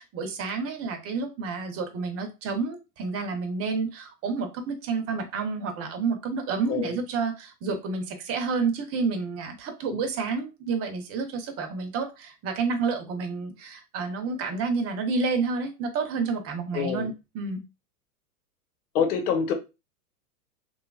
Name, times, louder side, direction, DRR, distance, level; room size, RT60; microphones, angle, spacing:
voice 1, 0.0-17.6, right 4 dB, 30° right, 0.8 m, -29 dB
voice 2, 16.7-17.1 18.9-19.5, left 7 dB, 70° left, 1.0 m, -25 dB
3.1 x 2.4 x 2.3 m
hypercardioid pair, 115°, 47 cm